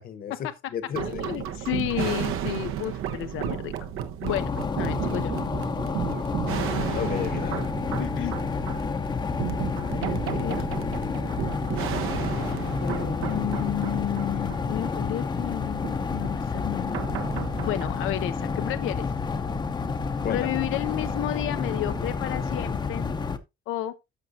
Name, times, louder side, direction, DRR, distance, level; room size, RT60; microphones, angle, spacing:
voice 1, 0.0-1.2 6.9-7.6 12.1-13.4 20.2-20.5, left 8 dB, 45° left, 1.1 m, -34 dB
sound 1, 0.9-15.6 15.8-15.9 16.2-16.3 16.9-18.2, right 9 dB, 85° right, 1.2 m, -33 dB
voice 2, 1.0-3.7 4.2-5.3 8.0-8.4 9.8-10.7 13.2-17.0 17.6-19.1 20.2-23.1 23.7-23.9, left 14 dB, 75° left, 0.6 m, -32 dB
sound 2, 4.3-23.4, left 5 dB, 20° left, 0.7 m, -29 dB
13.5 x 6.1 x 2.7 m
cardioid pair, 175°, 21 cm